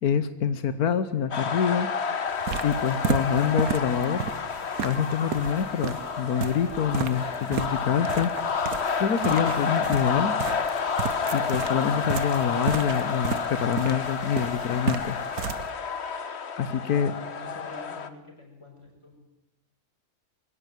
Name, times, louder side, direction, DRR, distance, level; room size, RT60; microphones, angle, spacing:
voice 1, 0.0-1.9 2.6-4.3 4.8-8.3 9.0-10.4 11.3-15.2 16.6-17.1, left 7 dB, 85° left, 12 dB, 1.6 m, -26 dB
sound 1, 1.3-18.1, left 5 dB, 50° left, 1.4 m, -30 dB
sound 2, 2.3-15.7, right 7 dB, 75° right, 1.5 m, -34 dB
voice 2, 17.0-19.2, left 3 dB, 20° left, 1 dB, 6.2 m, -46 dB
23.0 x 16.5 x 9.3 m, 0.91 s
omnidirectional pair, 1.5 m